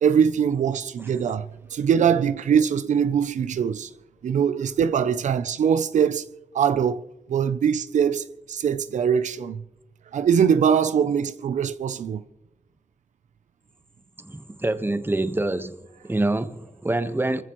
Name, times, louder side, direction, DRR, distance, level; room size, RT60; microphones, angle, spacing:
voice 1, 0.0-3.9 4.2-6.3 6.5-7.0 7.3-9.6 10.1-12.2, right 7 dB, 90° right, 0.5 m, -22 dB
voice 2, 14.2-15.7 16.0-17.4, right 2 dB, 20° right, 1.2 m, -26 dB
27.5 x 15.0 x 3.1 m
cardioid pair, 70°, 12 cm